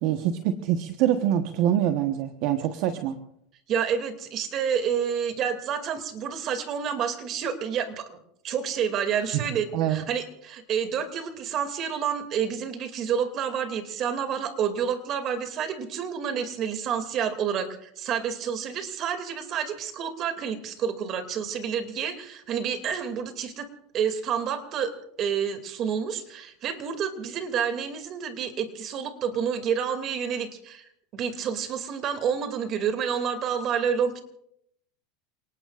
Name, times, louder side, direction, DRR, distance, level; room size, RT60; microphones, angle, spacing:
voice 1, 0.0-3.2 9.3-9.4 9.7-10.1, right 11 dB, 60° right, 7 dB, 1.2 m, -25 dB
voice 2, 3.7-8.2 8.4-23.7 23.9-24.9 25.2-34.2, right 7 dB, 40° right, 7 dB, 2.5 m, -29 dB
29.0 x 19.0 x 2.5 m, 0.74 s
supercardioid pair, 125°, 0 cm